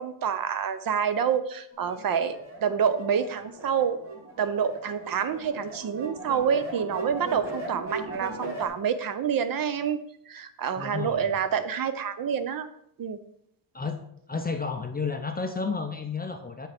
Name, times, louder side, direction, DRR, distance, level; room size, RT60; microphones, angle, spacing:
voice 1, 0.0-4.0 4.4-12.7 13.0-13.2, right 7 dB, 45° right, 12 dB, 0.6 m, -27 dB
sound 1, 1.7-8.7, right 2 dB, 25° right, 2.3 m, -38 dB
voice 2, 10.8-11.3 13.7-14.0 14.3-16.7, left 4 dB, 20° left, 6 dB, 0.4 m, -31 dB
7.3 x 4.4 x 5.7 m, 0.72 s
cardioid pair, 160°, 47 cm